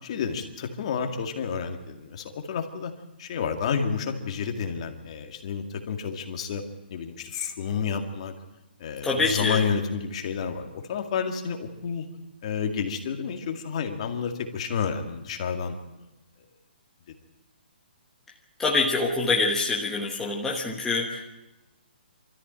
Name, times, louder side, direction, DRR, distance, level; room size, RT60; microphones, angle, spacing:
voice 1, 0.0-2.9 3.2-6.6 6.9-8.3 8.8-12.1 12.4-15.8, left 6 dB, 35° left, 5 dB, 2.1 m, -30 dB
voice 2, 9.0-9.6 18.6-21.2, left 3 dB, 5° left, -3 dB, 1.2 m, -25 dB
24.5 x 14.0 x 9.0 m, 0.98 s
hypercardioid pair, 170°, 6 cm